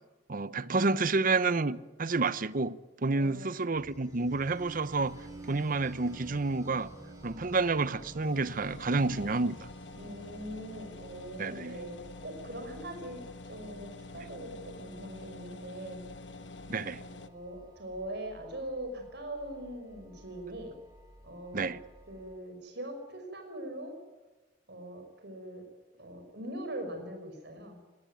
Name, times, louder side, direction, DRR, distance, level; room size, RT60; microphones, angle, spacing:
voice 1, 0.3-5.2 5.5-6.9 7.2-9.6 11.4-11.8 16.7-17.0 21.5-21.8, right 3 dB, 50° right, 0.8 m, -29 dB
voice 2, 3.1-3.5 9.9-16.0 17.1-20.7 21.2-21.8 22.1-23.9 24.7-25.6 26.0-27.8, right 1 dB, 65° right, 5.5 m, -42 dB
sound 1, 3.7-22.4, right 1 dB, 20° right, 6.6 m, -52 dB
noisy PC, 8.2-17.3, left 2 dB, 80° left, 1.3 m, -47 dB
20.5 x 19.0 x 9.2 m
head